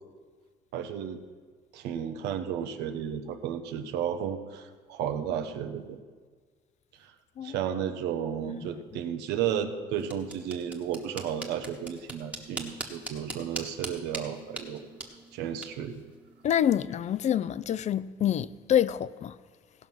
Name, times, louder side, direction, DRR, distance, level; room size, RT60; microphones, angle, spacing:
voice 1, 0.7-1.2 1.7-6.0 7.4-14.9 15.3-16.0, right 9 dB, 90° right, 1.0 m, -33 dB
sound 1, 9.9-16.9, right 2 dB, 10° right, 1.3 m, -42 dB
voice 2, 16.4-19.3, left 10 dB, 45° left, 0.4 m, -27 dB
16.5 x 5.6 x 6.0 m
cardioid pair, 110°, 17 cm